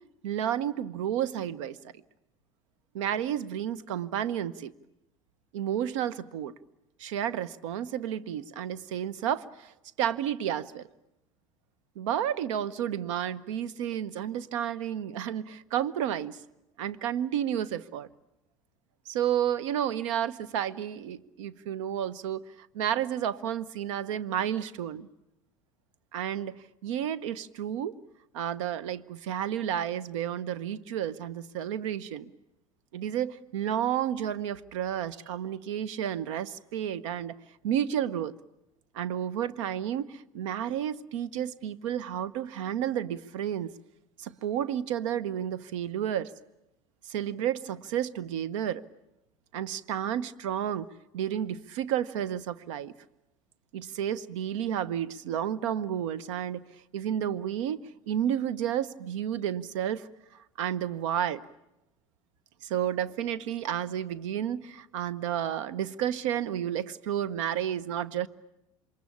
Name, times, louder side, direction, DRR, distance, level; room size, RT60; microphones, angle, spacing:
voice 1, 0.2-1.8 2.9-4.7 5.5-6.5 7.0-9.7 10.0-10.9 12.0-16.4 16.8-18.1 19.1-22.4 22.7-25.1 26.1-27.9 28.3-32.3 32.9-37.3 37.6-38.3 38.9-43.7 44.2-46.3 47.1-48.8 49.5-50.9 51.1-52.9 53.7-56.6 56.9-57.8 58.1-60.1 60.6-61.4 62.6-68.3, right 10 dB, 65° right, 1.0 m, -31 dB
27.5 x 23.5 x 8.6 m
figure-of-eight pair, 70°, 17 cm